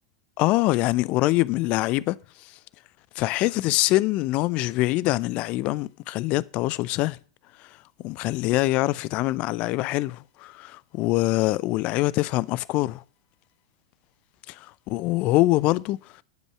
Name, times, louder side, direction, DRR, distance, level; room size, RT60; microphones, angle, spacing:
voice 1, 0.4-2.2 3.2-7.2 8.0-13.0 14.9-16.0, left 18 dB, 45° left, 0.4 m, -24 dB
10.5 x 5.3 x 7.5 m
figure-of-eight pair, 90°, 3 cm